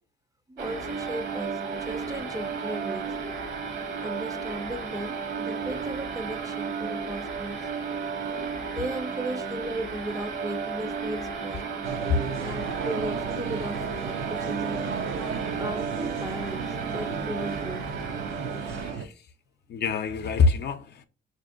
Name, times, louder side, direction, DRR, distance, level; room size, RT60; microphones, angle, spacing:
voice 1, 0.5-3.1 4.0-11.7 12.4-14.8 15.6-17.9, right 1 dB, 15° right, 0.5 m, -36 dB
sound 1, 0.6-19.0, right 5 dB, 65° right, 1.0 m, -33 dB
sound 2, 11.8-19.1, right 5 dB, 85° right, 0.6 m, -34 dB
voice 2, 18.6-19.3 19.7-21.1, left 5 dB, 55° left, 0.5 m, -25 dB
5.8 x 2.6 x 2.4 m
cardioid pair, 90°, 20 cm